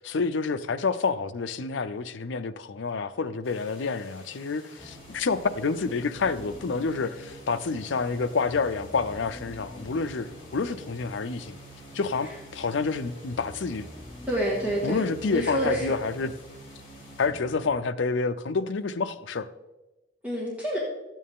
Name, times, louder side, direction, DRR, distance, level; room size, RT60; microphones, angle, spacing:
voice 1, 0.0-11.6 11.9-13.9 14.8-16.3 17.2-19.5, left 4 dB, 70° left, 0.5 m, -28 dB
sound 1, 3.4-17.3, left 2 dB, 30° left, 3.6 m, -52 dB
sound 2, 4.8-17.7, equal, 10° left, 0.8 m, -46 dB
voice 2, 14.3-16.0 20.2-20.8, right 1 dB, 10° right, 1.9 m, -28 dB
13.5 x 9.0 x 3.7 m
head